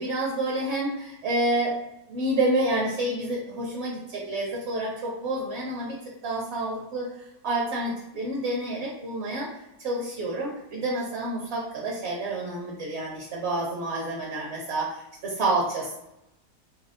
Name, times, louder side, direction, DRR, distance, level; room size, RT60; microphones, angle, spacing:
voice 1, 0.0-1.8 2.1-6.0 6.2-7.1 7.4-9.5 9.8-16.0, right 1 dB, 55° right, -3 dB, 0.8 m, -28 dB
4.2 x 2.0 x 2.4 m, 0.88 s
omnidirectional pair, 1.7 m